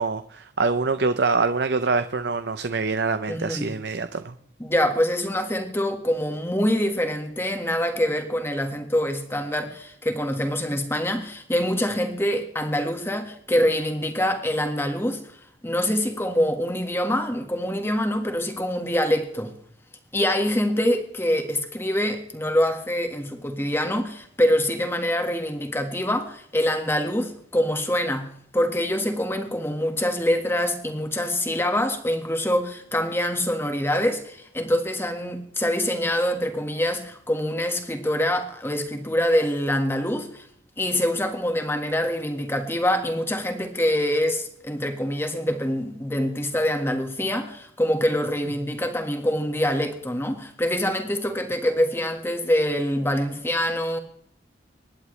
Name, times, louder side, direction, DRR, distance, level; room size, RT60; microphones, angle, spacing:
voice 1, 0.0-4.3, right 4 dB, 65° right, 10 dB, 0.7 m, -25 dB
voice 2, 3.3-3.7 4.6-15.2 15.6-19.5 20.1-40.5 40.8-54.0, left 1 dB, 15° left, 6 dB, 1.6 m, -25 dB
24.5 x 11.0 x 3.3 m, 0.67 s
head